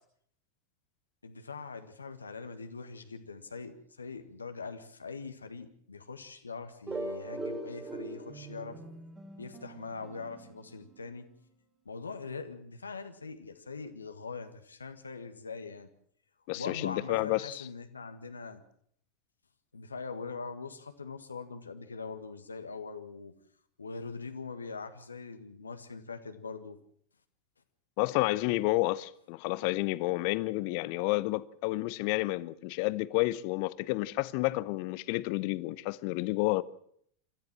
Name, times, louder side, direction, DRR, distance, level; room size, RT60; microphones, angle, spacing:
voice 1, 1.2-8.8 9.4-11.3 11.8-15.9 16.5-18.6 19.7-23.3 23.8-26.8, left 4 dB, 75° left, 1.7 m, -42 dB
sound 1, 6.9-11.4, right 2 dB, 15° right, 3.0 m, -42 dB
voice 2, 16.5-17.6 28.0-36.6, left 20 dB, 45° left, 0.8 m, -30 dB
26.5 x 13.5 x 7.5 m
figure-of-eight pair, 90°, 0 cm